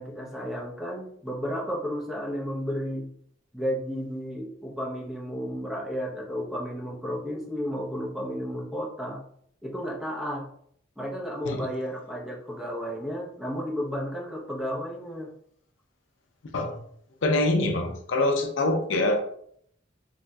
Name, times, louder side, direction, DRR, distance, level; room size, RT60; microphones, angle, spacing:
voice 1, 0.0-3.1 3.5-9.2 9.6-10.5 11.0-15.3, equal, ahead, -2 dB, 0.5 m, -32 dB
voice 2, 17.2-19.2, left 2 dB, 75° left, 5 dB, 0.5 m, -24 dB
4.0 x 2.6 x 2.2 m, 0.65 s
head